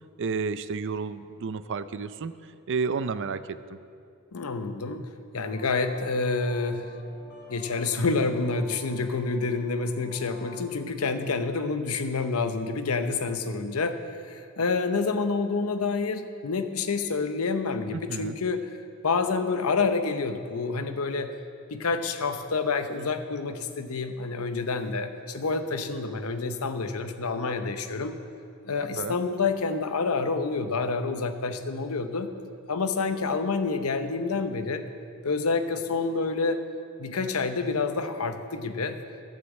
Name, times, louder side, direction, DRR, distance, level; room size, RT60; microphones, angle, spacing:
voice 1, 0.2-2.3 2.7-3.8 17.9-18.4 29.0-29.2, right 5 dB, 60° right, 13 dB, 0.5 m, -31 dB
voice 2, 4.3-6.9 7.5-18.7 19.0-21.4 21.7-28.2 28.6-32.3 32.7-34.9 35.2-36.7 37.0-39.0, left 4 dB, 90° left, 9 dB, 0.8 m, -28 dB
sound 1, 5.4-10.6, left 2 dB, 55° left, 3.4 m, -49 dB
13.0 x 7.5 x 7.3 m, 2.5 s
head